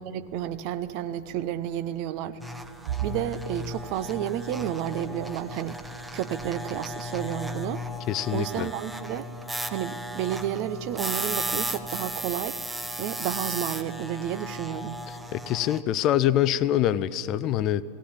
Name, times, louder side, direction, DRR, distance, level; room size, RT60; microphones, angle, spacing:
voice 1, 0.0-2.4 2.8-7.8 8.3-9.2 9.7-12.6 13.0-15.0, right 11 dB, 45° right, 0.8 m, -31 dB
sound 1, 2.4-15.8, equal, 5° right, 0.9 m, -35 dB
voice 2, 8.1-8.7 15.3-17.8, left 12 dB, 35° left, 0.5 m, -25 dB
18.0 x 17.5 x 8.9 m
figure-of-eight pair, 90°, 0 cm